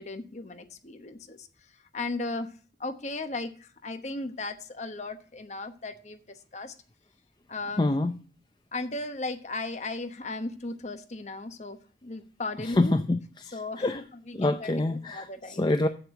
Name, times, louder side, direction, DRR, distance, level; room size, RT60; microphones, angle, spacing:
voice 1, 0.0-1.5 1.9-2.5 2.8-6.7 7.5-7.9 8.7-13.0 13.5-15.7, left 2 dB, 40° left, 9 dB, 1.0 m, -36 dB
voice 2, 7.8-8.2 12.6-14.0 14.3-15.9, left 2 dB, 25° left, 8 dB, 0.5 m, -26 dB
8.3 x 7.8 x 5.8 m, 0.41 s
head